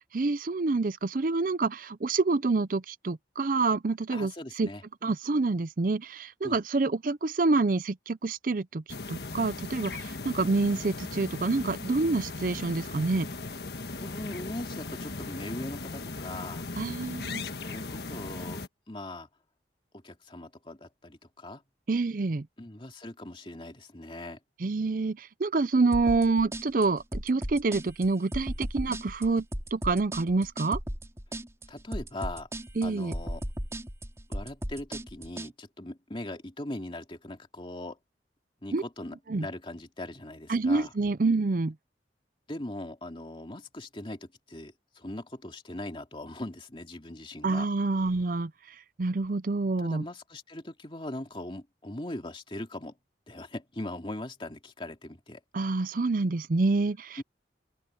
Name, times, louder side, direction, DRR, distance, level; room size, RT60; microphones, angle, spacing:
voice 1, 0.1-4.3 4.6-4.7 5.0-8.8 9.1-13.3 16.8-17.4 21.9-22.5 24.6-29.4 29.7-30.8 32.8-33.1 38.7-38.8 39.3-39.5 40.5-41.7 47.4-48.5 49.0-50.0 55.5-57.2, right 3 dB, 50° right, 0.5 m, -27 dB
voice 2, 4.1-4.8 6.4-6.6 14.0-16.7 17.6-18.6 18.9-19.3 19.9-21.6 22.6-24.4 31.7-32.5 32.8-33.4 34.3-38.0 38.6-39.2 39.4-40.9 42.5-47.7 49.8-53.0 53.3-55.4 57.2-57.3, left 1 dB, 30° left, 2.5 m, -40 dB
sound 1, 8.9-18.7, left 3 dB, 65° left, 1.5 m, -38 dB
sound 2, 25.9-35.5, equal, 15° right, 4.6 m, -36 dB
open air
head